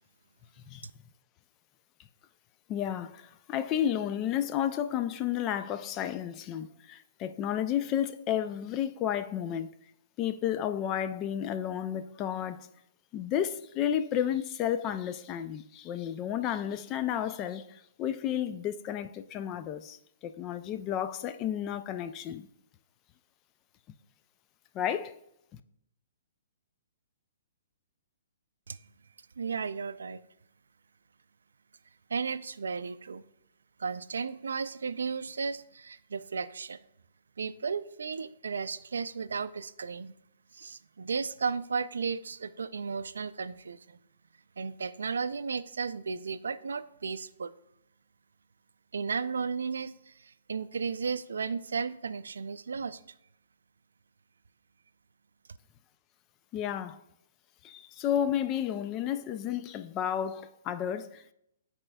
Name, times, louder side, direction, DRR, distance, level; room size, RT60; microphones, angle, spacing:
voice 1, 2.7-9.7 10.2-12.7 13.1-22.5 24.7-25.1 56.5-57.0 57.6-61.3, left 10 dB, 25° left, 0.3 m, -32 dB
voice 2, 29.4-30.2 32.1-33.2 33.8-36.8 37.4-40.1 40.5-44.0 44.6-47.5 48.9-53.0, right 5 dB, 90° right, 0.3 m, -34 dB
12.0 x 4.2 x 2.3 m
hypercardioid pair, 150°, 0 cm